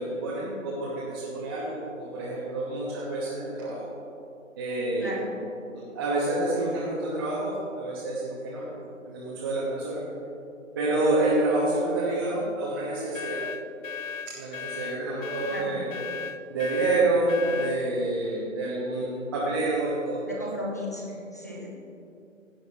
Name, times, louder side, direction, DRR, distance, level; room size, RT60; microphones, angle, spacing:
voice 1, 0.0-3.8 4.6-5.1 5.7-8.7 9.1-10.0 10.7-13.4 14.3-15.9 16.5-20.2, right 2 dB, 15° right, -8 dB, 1.2 m, -28 dB
voice 2, 5.0-5.4 11.8-12.0 15.5-15.8 20.3-21.7, equal, 15° left, -3 dB, 0.6 m, -36 dB
sound 1, 13.1-17.8, left 6 dB, 75° left, 0.7 m, -36 dB
16.5 x 7.9 x 3.0 m, 2.6 s
figure-of-eight pair, 155°, 40 cm